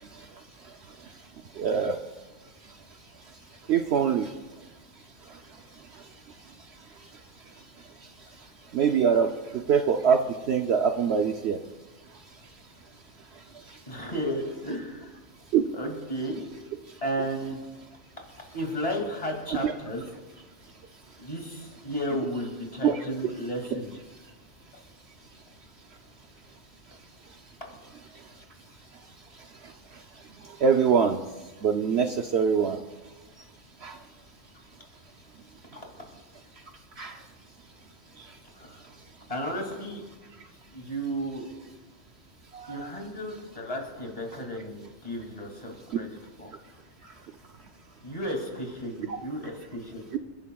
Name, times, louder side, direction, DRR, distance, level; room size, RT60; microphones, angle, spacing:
voice 1, 1.6-1.9 3.7-4.3 8.7-9.3 9.5-10.2 10.5-11.6 15.5-15.6 19.6-19.7 22.8-22.9 30.6-31.2 31.6-32.8 33.8-33.9 37.0-37.1 42.8-42.9 50.1-50.2, right 7 dB, 60° right, 5 dB, 0.8 m, -23 dB
voice 2, 13.9-15.2 15.7-16.4 17.0-17.7 18.4-20.0 21.2-23.9 38.5-38.9 39.3-40.0 40.7-41.4 42.7-46.5 48.0-50.0, equal, 25° left, 1 dB, 2.5 m, -33 dB
28.5 x 11.0 x 2.3 m, 1.2 s
omnidirectional pair, 1.4 m